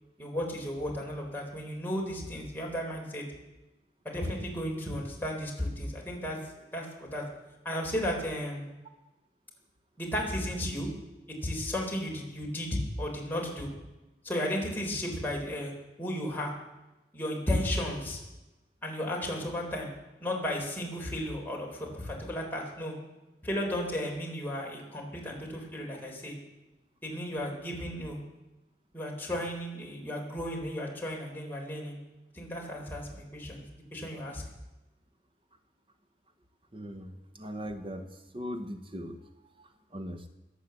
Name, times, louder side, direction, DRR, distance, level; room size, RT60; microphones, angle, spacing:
voice 1, 0.2-3.2 4.0-6.4 6.7-7.2 7.6-8.6 10.0-10.9 11.4-13.7 14.2-15.7 16.0-16.5 17.1-18.2 18.8-19.9 20.2-22.9 23.4-26.4 27.0-28.2 28.9-32.0 32.3-33.6 33.9-34.4, left 1 dB, 10° left, -2 dB, 3.7 m, -34 dB
voice 2, 36.7-40.3, equal, 30° right, 7 dB, 1.0 m, -40 dB
21.5 x 8.4 x 7.8 m, 1.0 s
head